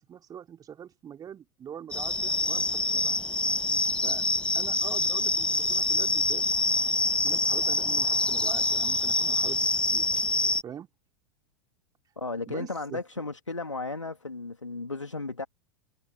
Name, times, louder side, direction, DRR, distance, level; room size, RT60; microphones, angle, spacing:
voice 1, 0.0-3.2 4.0-4.2 4.5-6.5 7.2-10.0 10.6-10.9 12.5-13.0, right 9 dB, 25° right, 3.0 m, -43 dB
sound 1, 1.9-10.6, left 2 dB, 5° left, 1.4 m, -26 dB
voice 2, 12.2-15.5, left 3 dB, 85° left, 2.3 m, -35 dB
figure-of-eight pair, 95°, 15 cm